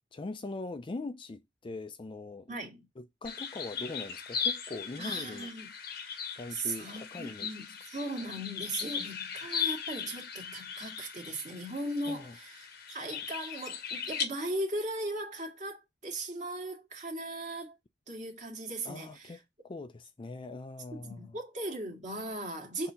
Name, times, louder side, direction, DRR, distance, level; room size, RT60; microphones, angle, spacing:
voice 1, 0.1-2.6 3.0-5.5 6.4-7.6 12.1-12.4 18.8-21.4 22.8-22.9, left 3 dB, 25° left, 0.4 m, -42 dB
voice 2, 2.5-2.8 5.0-5.7 6.5-17.8 18.1-19.4 20.9-22.9, right 1 dB, 40° right, 1.9 m, -38 dB
sound 1, 3.2-14.2, left 7 dB, 55° left, 0.9 m, -38 dB
6.5 x 2.8 x 5.5 m
head